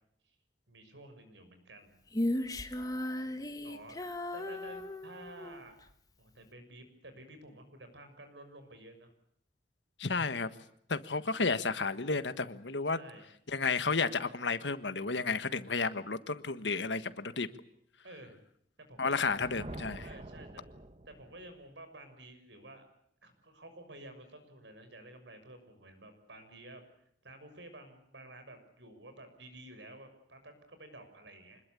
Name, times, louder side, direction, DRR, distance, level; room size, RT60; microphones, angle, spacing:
voice 1, 0.7-1.9 3.6-4.0 4.3-5.8 6.2-9.1 11.2-11.4 12.9-13.3 18.0-18.4 18.9-19.4 20.0-20.6 21.0-22.8 23.2-26.8 27.2-31.6, right 1 dB, 80° right, 8 dB, 6.5 m, -51 dB
Female singing, 2.1-5.6, left 1 dB, 20° left, 1.6 m, -36 dB
voice 2, 10.0-10.5 10.9-13.0 13.5-17.5 19.0-20.0, left 4 dB, 80° left, 12 dB, 1.5 m, -32 dB
Thunder, 19.0-21.6, right 1 dB, 35° right, 1.2 m, -47 dB
26.5 x 21.0 x 8.5 m, 0.70 s
head